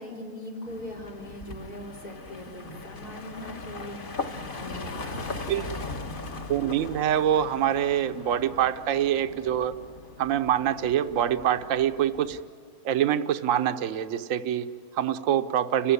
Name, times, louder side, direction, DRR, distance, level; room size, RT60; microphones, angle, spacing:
voice 1, 0.0-6.7, left 1 dB, 90° left, -3 dB, 5.4 m, -41 dB
sound 1, 0.6-12.5, left 3 dB, 35° left, 1.3 m, -39 dB
voice 2, 6.5-9.7 10.2-12.4 12.8-15.9, right 10 dB, 65° right, 10 dB, 1.1 m, -25 dB
29.5 x 16.0 x 9.8 m, 2.2 s
omnidirectional pair, 1.6 m